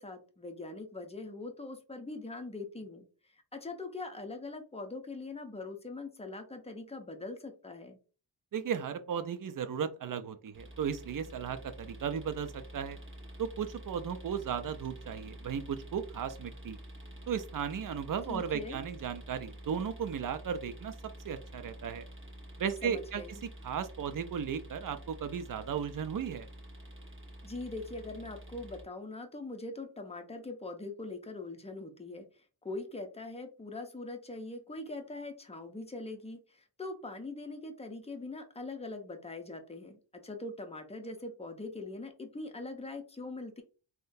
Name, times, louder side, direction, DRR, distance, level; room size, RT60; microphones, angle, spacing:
voice 1, 0.0-8.0 18.3-18.8 22.8-23.4 27.4-43.6, left 2 dB, 15° left, 4 dB, 0.6 m, -42 dB
voice 2, 8.5-13.0 13.4-16.8 17.3-20.9 21.2-22.0 22.6-23.2 23.6-26.5, right 7 dB, 45° right, 10 dB, 0.5 m, -35 dB
sound 1, 10.5-28.8, right 1 dB, 25° right, 1.0 m, -48 dB
3.6 x 2.2 x 2.6 m, 0.36 s
wide cardioid pair, 80°, 47 cm